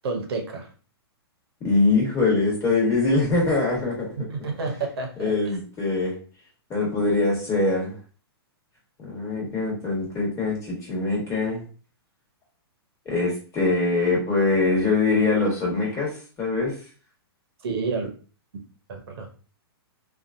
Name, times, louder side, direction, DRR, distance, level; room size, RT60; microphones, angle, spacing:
voice 1, 0.0-0.7 4.2-5.2 17.6-18.1 18.9-19.3, right 4 dB, 70° right, 4 dB, 0.8 m, -29 dB
voice 2, 1.6-4.1 5.2-6.2 6.7-7.9 9.0-11.6 13.0-16.1 16.4-16.7, left 3 dB, 20° left, -3 dB, 1.3 m, -23 dB
2.6 x 2.4 x 2.5 m, 0.38 s
hypercardioid pair, 130°, 13 cm